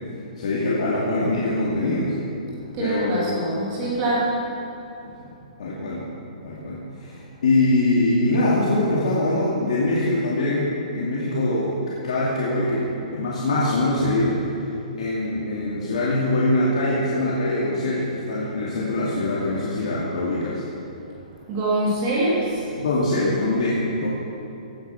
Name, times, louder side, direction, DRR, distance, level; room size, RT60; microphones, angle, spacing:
voice 1, 0.4-2.1 2.8-3.2 5.0-5.3 5.6-6.0 6.4-7.1 7.4-11.8 12.0-14.4 15.0-20.6 22.8-24.1, left 2 dB, 55° left, -6 dB, 2.4 m, -23 dB
voice 2, 2.7-4.3 21.5-22.7, right 2 dB, 20° right, -7 dB, 2.6 m, -24 dB
16.5 x 9.1 x 5.9 m, 2.8 s
hypercardioid pair, 180°, 4 cm